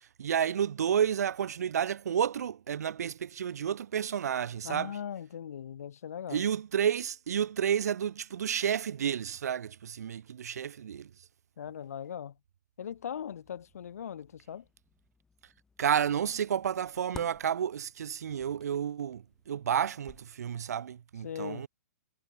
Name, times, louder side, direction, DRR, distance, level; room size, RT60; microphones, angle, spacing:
voice 1, 0.2-4.9 6.3-11.1 15.8-21.7, right 8 dB, 75° right, 1.0 m, -31 dB
voice 2, 4.6-6.4 11.6-12.4 12.8-14.6 21.2-21.7, left 8 dB, 65° left, 2.8 m, -39 dB
sound 1, 12.8-20.7, left 4 dB, 5° left, 1.4 m, -55 dB
hypercardioid pair, 180°, 9 cm